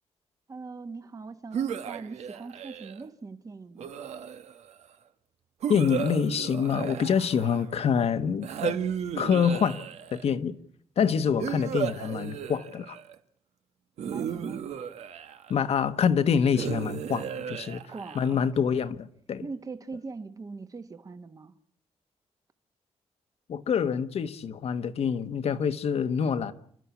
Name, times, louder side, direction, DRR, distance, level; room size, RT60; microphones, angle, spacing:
voice 1, 0.5-3.9 11.3-11.5 14.0-14.6 17.9-18.7 19.4-21.5, right 4 dB, 30° right, 1.2 m, -41 dB
sound 1, 1.5-3.1 3.8-4.7 5.6-7.8 8.4-10.3 11.4-13.2 14.0-15.6 16.5-18.5, right 8 dB, 90° right, 1.4 m, -34 dB
voice 2, 5.7-8.8 9.2-9.8 10.1-10.6 11.0-13.0 15.5-17.8 18.1-19.4 23.5-26.5, left 7 dB, 70° left, 1.3 m, -26 dB
29.5 x 13.0 x 8.3 m
wide cardioid pair, 125°, 11 cm